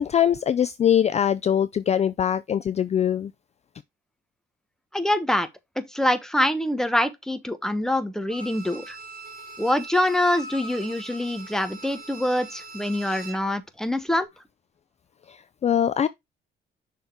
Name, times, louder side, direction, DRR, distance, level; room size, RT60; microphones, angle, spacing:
voice 1, 0.0-3.3 15.6-16.1, left 9 dB, 35° left, 0.3 m, -22 dB
voice 2, 4.9-5.5 5.8-9.0 9.6-14.3, left 1 dB, 5° left, 1.0 m, -25 dB
Bowed string instrument, 8.3-13.5 13.8-13.9, right 2 dB, 45° right, 3.1 m, -41 dB
6.4 x 3.7 x 4.5 m
cardioid pair, 90°, 20 cm